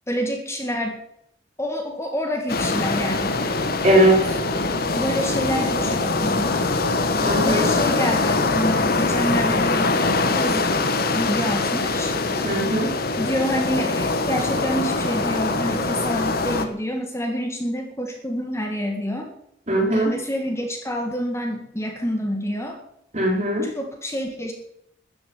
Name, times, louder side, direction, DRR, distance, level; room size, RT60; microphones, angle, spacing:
voice 1, 0.1-1.0 1.6-3.4 4.6-6.7 7.4-10.0 10.3-10.7 11.1-12.5 13.2-19.3 19.9-22.8 23.6-24.5, equal, 15° left, 3 dB, 1.9 m, -27 dB
sound 1, 2.5-16.7, left 3 dB, 55° left, 1.4 m, -23 dB
voice 2, 3.8-4.4 7.2-7.7 12.4-12.9 19.7-20.2 23.1-23.7, right 1 dB, 40° right, 0 dB, 4.2 m, -19 dB
14.0 x 7.1 x 9.5 m, 0.74 s
head